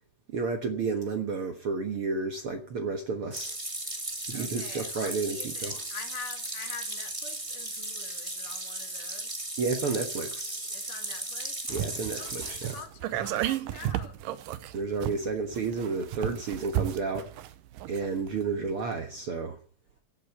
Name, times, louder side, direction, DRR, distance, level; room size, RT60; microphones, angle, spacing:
voice 1, 0.3-3.6 4.3-5.8 9.6-10.7 11.7-12.8 14.7-17.3 17.9-19.6, right 4 dB, 55° right, 1.7 m, -31 dB
sound 1, 3.3-12.8, right 2 dB, 15° right, 1.2 m, -36 dB
voice 2, 4.3-9.3 10.7-11.6 12.2-14.2, left 6 dB, 70° left, 3.4 m, -46 dB
sound 2, 11.7-18.4 18.7-18.8, right 12 dB, 80° right, 2.4 m, -33 dB
15.0 x 7.7 x 8.5 m
omnidirectional pair, 3.9 m